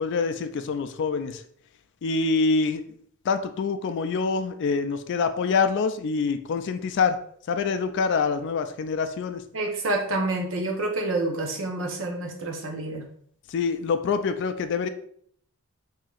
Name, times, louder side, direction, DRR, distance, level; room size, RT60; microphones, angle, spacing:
voice 1, 0.0-1.4 2.0-2.8 3.3-7.2 7.5-9.4 13.5-14.9, left 4 dB, 55° left, 9 dB, 0.3 m, -25 dB
voice 2, 9.5-13.1, right 2 dB, 60° right, 2 dB, 0.8 m, -28 dB
5.5 x 2.7 x 2.4 m, 0.63 s
head